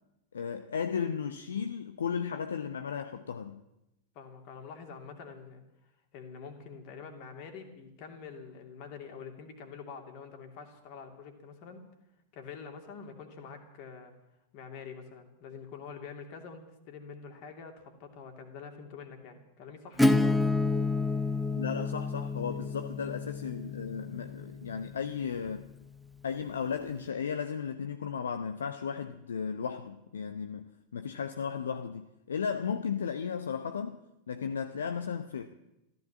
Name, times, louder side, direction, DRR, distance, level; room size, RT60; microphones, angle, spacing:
voice 1, 0.3-3.6 21.5-25.7 26.2-34.0 34.3-35.5, left 6 dB, 70° left, 0.7 m, -35 dB
voice 2, 4.1-5.6 6.1-11.8 12.3-14.1 14.5-20.4, left 6 dB, 45° left, 2.8 m, -46 dB
Acoustic guitar / Strum, 20.0-25.5, left 2 dB, ahead, 0.8 m, -29 dB
14.5 x 13.5 x 7.4 m
figure-of-eight pair, 90°, 0 cm